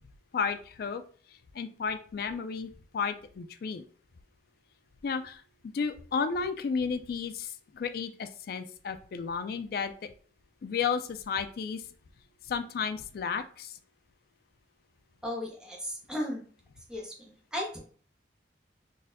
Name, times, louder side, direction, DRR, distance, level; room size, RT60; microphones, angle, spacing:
voice 1, 0.3-1.0 1.5-3.9 5.0-5.4 5.7-9.9 10.6-11.8 12.5-13.8, left 5 dB, 55° left, 9 dB, 0.3 m, -33 dB
voice 2, 15.2-16.5 16.9-17.8, left 1 dB, 5° right, -1 dB, 0.7 m, -35 dB
4.0 x 2.6 x 2.5 m, 0.43 s
head